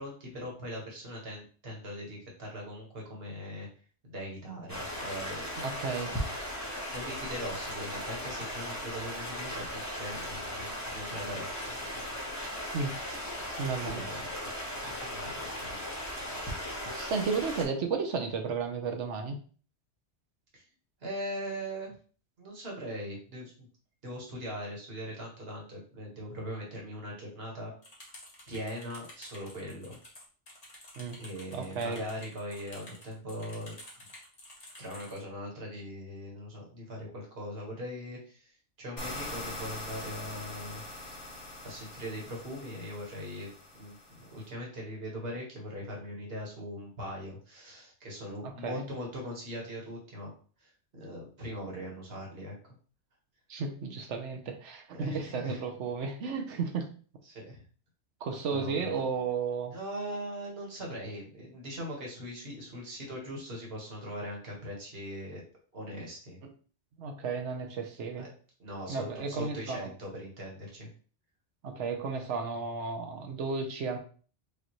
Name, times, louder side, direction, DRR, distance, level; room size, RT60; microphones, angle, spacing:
voice 1, 0.0-3.7 4.0-5.4 6.0-6.2 6.6-11.5 13.8-14.3 14.8-15.8 20.5-20.7 21.0-21.9 22.4-23.7 24.0-27.7 28.5-30.0 31.2-33.8 34.8-41.2 41.6-50.3 50.6-52.5 54.9-55.6 57.2-57.6 58.5-59.0 59.7-65.4 65.7-66.4 68.2-68.3 68.6-70.9, equal, 55° right, -2 dB, 1.6 m, -40 dB
Stream, 4.7-17.6, equal, 15° left, 1.2 m, -37 dB
voice 2, 5.6-6.1 12.7-12.9 13.6-14.0 16.9-19.4 31.0-31.2 31.5-32.0 48.6-48.9 53.5-56.9 58.2-59.8 67.0-68.3 68.9-69.9 71.6-74.0, right 5 dB, 80° right, 4 dB, 1.1 m, -33 dB
sound 1, 27.8-35.2, left 1 dB, 35° left, 1.3 m, -50 dB
sound 2, 39.0-44.5, left 2 dB, 90° left, 1.9 m, -43 dB
5.2 x 2.6 x 3.0 m, 0.41 s
omnidirectional pair, 1.2 m